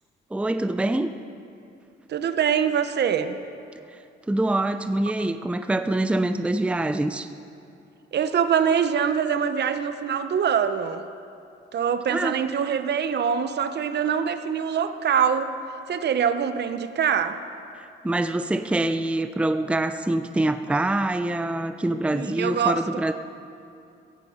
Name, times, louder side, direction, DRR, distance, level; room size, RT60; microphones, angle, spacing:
voice 1, 0.3-1.1 3.9-4.0 4.3-7.3 12.1-12.4 17.8-23.1, right 1 dB, 5° right, 10 dB, 0.5 m, -25 dB
voice 2, 2.1-3.4 8.1-11.0 11.7-15.6 15.9-17.4 22.1-22.8, right 7 dB, 60° right, 10 dB, 0.9 m, -24 dB
16.5 x 14.5 x 5.1 m, 2.5 s
cardioid pair, 90°, 20 cm